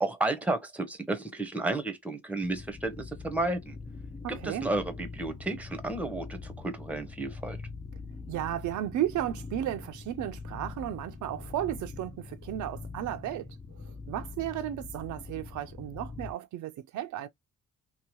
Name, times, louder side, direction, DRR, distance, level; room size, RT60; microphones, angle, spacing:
voice 1, 0.0-3.8 4.3-7.6, right 2 dB, 5° right, 0.7 m, -32 dB
sound 1, 2.4-16.3, left 4 dB, 15° left, 0.3 m, -43 dB
voice 2, 4.2-4.7 8.3-17.3, right 12 dB, 75° right, 0.5 m, -34 dB
2.8 x 2.1 x 2.9 m
cardioid pair, 90°, 30 cm